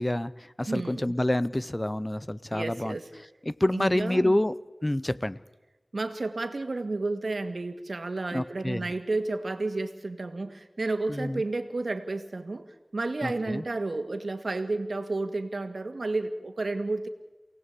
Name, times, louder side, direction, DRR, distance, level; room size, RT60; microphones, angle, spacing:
voice 1, 0.0-3.0 3.5-4.5 4.8-5.4 8.3-8.8 11.1-11.4 13.2-13.6, left 1 dB, 20° left, 16 dB, 0.7 m, -27 dB
voice 2, 0.7-1.1 2.5-3.1 3.7-4.3 5.9-17.1, right 2 dB, 75° right, 8 dB, 1.9 m, -31 dB
28.0 x 18.0 x 8.4 m, 1.1 s
wide cardioid pair, 60°, 0 cm